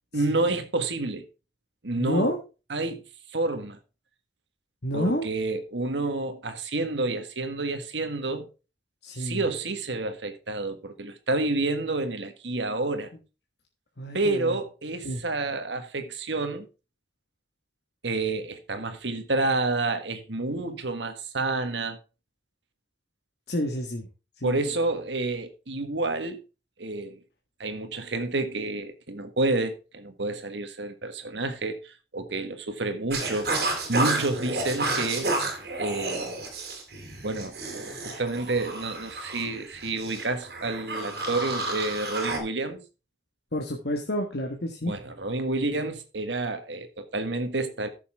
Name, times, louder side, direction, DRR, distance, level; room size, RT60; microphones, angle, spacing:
voice 1, 0.1-1.2 1.8-2.3 2.7-3.0 3.3-3.8 4.9-8.5 9.2-13.1 14.1-16.7 18.0-22.0 24.4-26.4 26.8-27.2 27.6-33.5 33.9-35.3 35.8-36.3 37.2-42.8 44.9-47.9, right 2 dB, 85° right, 1.6 m, -29 dB
voice 2, 2.0-2.4 4.8-5.3 9.0-9.4 14.0-14.6 15.0-15.2 23.5-24.1 24.4-24.6 43.5-44.9, left 1 dB, 65° left, 1.5 m, -29 dB
sound 1, 33.1-42.4, right 2 dB, 60° right, 3.2 m, -31 dB
13.5 x 7.0 x 3.6 m
head